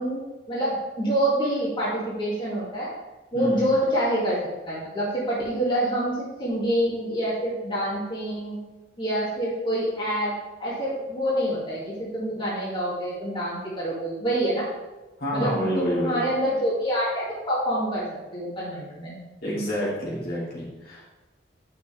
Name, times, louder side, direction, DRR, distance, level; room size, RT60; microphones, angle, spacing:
voice 1, 0.0-2.9 3.3-4.4 4.7-8.6 9.0-10.3 10.6-14.7 15.3-19.2, right 1 dB, 30° left, -8 dB, 2.3 m, -26 dB
voice 2, 3.3-3.8 15.2-16.2 19.4-21.1, equal, 60° left, -6 dB, 2.9 m, -28 dB
10.0 x 6.5 x 3.5 m, 1.1 s
head